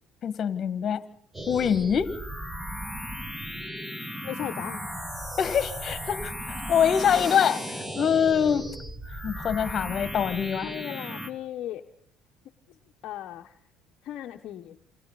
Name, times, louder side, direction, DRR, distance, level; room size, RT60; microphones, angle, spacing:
voice 1, 0.2-1.0 1.5-2.2 5.4-8.7 9.2-10.7, left 8 dB, 45° left, 13 dB, 1.7 m, -25 dB
sound 1, 1.3-11.3, equal, 10° right, 2.2 m, -36 dB
voice 2, 4.2-5.1 10.6-11.8 13.0-13.6 14.0-14.8, left 12 dB, 60° left, 4 dB, 1.0 m, -37 dB
28.5 x 26.0 x 4.1 m, 0.63 s
supercardioid pair, 80°, 0 cm